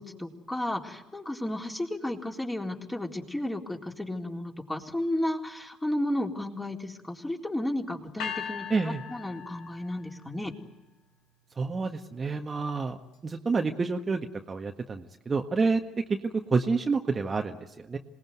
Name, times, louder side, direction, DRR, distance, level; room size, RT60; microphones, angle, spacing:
voice 1, 0.0-8.7 9.1-10.5, left 1 dB, 10° left, 1 dB, 4.0 m, -33 dB
sound 1, 8.2-10.3, left 7 dB, 65° left, 2.9 m, -38 dB
voice 2, 8.7-9.0 11.6-13.0 13.2-15.8 16.1-16.2 16.5-18.0, right 4 dB, 30° right, 4 dB, 1.6 m, -28 dB
27.0 x 19.0 x 9.5 m, 1.0 s
hypercardioid pair, 55°, 0 cm